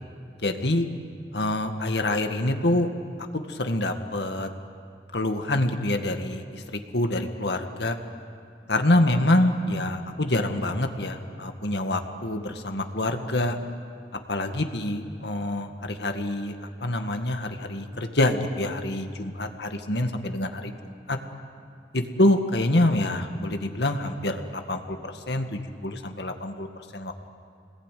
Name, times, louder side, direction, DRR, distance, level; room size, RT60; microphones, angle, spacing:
voice 1, 0.4-0.9 1.3-2.9 3.3-4.5 5.1-8.0 8.7-13.6 14.3-16.6 16.8-21.2 21.9-26.7 26.9-27.1, left 1 dB, 70° left, 5 dB, 1.9 m, -26 dB
26.5 x 20.5 x 9.3 m, 2.5 s
head